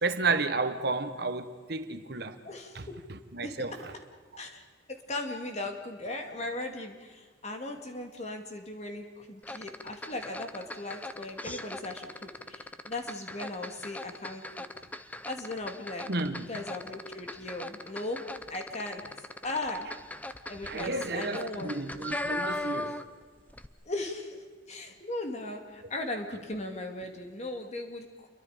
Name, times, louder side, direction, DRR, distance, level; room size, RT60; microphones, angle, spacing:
voice 1, 0.0-2.4 2.7-3.9 4.3-4.4 11.5-11.6 16.1-16.6 20.6-23.0, right 3 dB, 55° right, 1.2 m, -32 dB
voice 2, 2.4-3.0 3.4-3.5 4.4-4.6 4.9-14.4 15.3-16.1 16.4-18.2 18.5-19.0 19.4-19.9 20.5-22.0 23.9-28.3, left 2 dB, 35° left, 2.4 m, -38 dB
sound 1, 9.4-23.2 23.5-23.7, left 1 dB, 10° left, 0.8 m, -39 dB
29.0 x 23.5 x 5.1 m
head